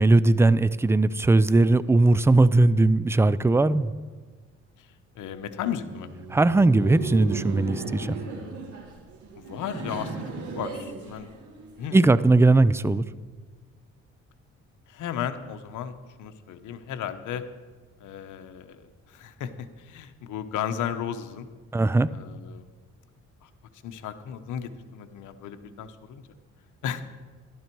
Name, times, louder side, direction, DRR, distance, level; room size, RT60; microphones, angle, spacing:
voice 1, 0.0-3.9 6.3-8.2 11.9-13.0 21.7-22.1, right 2 dB, 10° right, 16 dB, 0.4 m, -19 dB
voice 2, 5.1-6.1 8.0-8.3 9.4-10.2 10.5-11.3 11.8-12.0 14.9-17.4 18.0-21.5 22.1-22.7 23.4-23.5 23.8-26.3 26.8-27.0, left 9 dB, 80° left, 9 dB, 1.0 m, -35 dB
Laughter, 5.6-11.9, right 4 dB, 75° right, 2.7 m, -36 dB
13.0 x 12.0 x 4.6 m, 1.4 s
cardioid pair, 90°, 30 cm